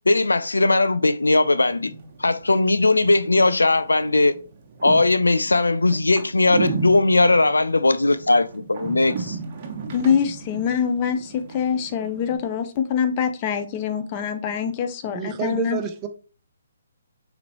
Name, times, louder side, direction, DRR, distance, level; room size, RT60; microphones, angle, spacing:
voice 1, 0.1-1.9 2.2-4.3 4.8-9.4, left 2 dB, 85° left, 0.3 m, -19 dB
sound 1, 1.3-12.4, right 4 dB, 40° right, 1.0 m, -35 dB
voice 2, 9.9-15.8, left 7 dB, 30° left, 0.6 m, -24 dB
voice 3, 15.1-16.1, right 10 dB, 20° right, 0.5 m, -28 dB
5.0 x 3.0 x 3.0 m
figure-of-eight pair, 140°, 0 cm